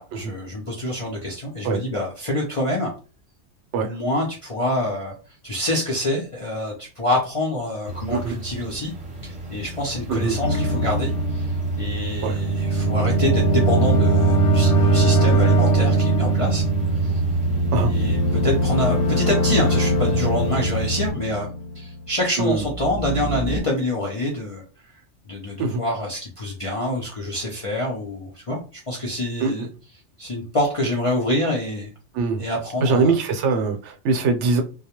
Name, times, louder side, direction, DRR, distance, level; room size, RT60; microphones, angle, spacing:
voice 1, 0.0-2.9 3.8-5.1 5.4-8.9 9.2-16.6 17.0-17.1 17.8-21.5 21.7-24.6 25.3-29.7 30.2-31.9 32.4-33.1, left 1 dB, 50° left, -3 dB, 0.4 m, -26 dB
sound 1, 7.9-21.1, right 3 dB, 35° right, 0.8 m, -27 dB
sound 2, 10.4-22.1 22.5-23.6, right 2 dB, 80° left, 1.1 m, -22 dB
voice 2, 32.8-34.6, right 4 dB, 75° right, 4 dB, 0.9 m, -22 dB
2.3 x 2.1 x 2.8 m, 0.35 s
omnidirectional pair, 1.2 m